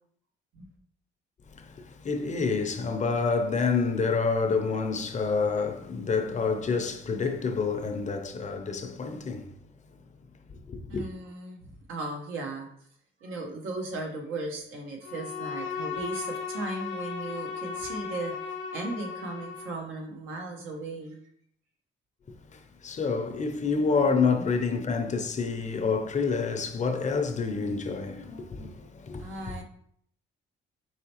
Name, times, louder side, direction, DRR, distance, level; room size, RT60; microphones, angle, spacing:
voice 1, 1.6-9.5 10.7-11.0 22.5-29.3, left 4 dB, 35° left, 0.6 m, -28 dB
voice 2, 10.9-12.7 13.2-21.2 29.2-29.6, right 2 dB, 85° right, 1.0 m, -37 dB
Bowed string instrument, 15.0-19.8, left 6 dB, 85° left, 0.7 m, -36 dB
4.8 x 3.2 x 2.9 m
cardioid pair, 90°, 20 cm